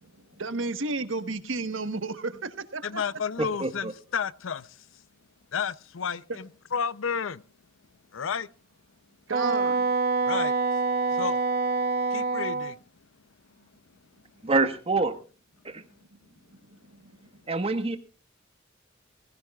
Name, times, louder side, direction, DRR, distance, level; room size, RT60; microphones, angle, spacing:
voice 1, 0.0-3.0 6.3-6.4 9.3-9.9 16.5-17.2, right 3 dB, 75° right, 1.2 m, -33 dB
voice 2, 2.8-4.9 5.5-7.4 8.1-8.5 10.2-10.5 11.1-11.4 12.1-12.8, left 6 dB, 75° left, 0.6 m, -31 dB
voice 3, 3.4-3.9 14.4-15.2 15.6-15.8 17.5-18.0, right 3 dB, 30° right, 1.4 m, -26 dB
Wind instrument woodwind instrument, 9.3-12.7, right 3 dB, 50° right, 0.9 m, -26 dB
20.5 x 16.0 x 2.4 m
head